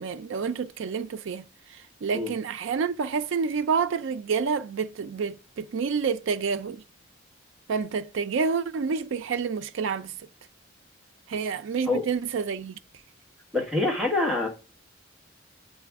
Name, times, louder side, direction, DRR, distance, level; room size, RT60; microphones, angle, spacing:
voice 1, 0.0-6.8 7.7-10.1 11.3-12.7, right 5 dB, 75° right, 0.4 m, -28 dB
voice 2, 13.5-14.5, left 2 dB, ahead, 1.2 m, -25 dB
7.6 x 4.0 x 3.5 m
head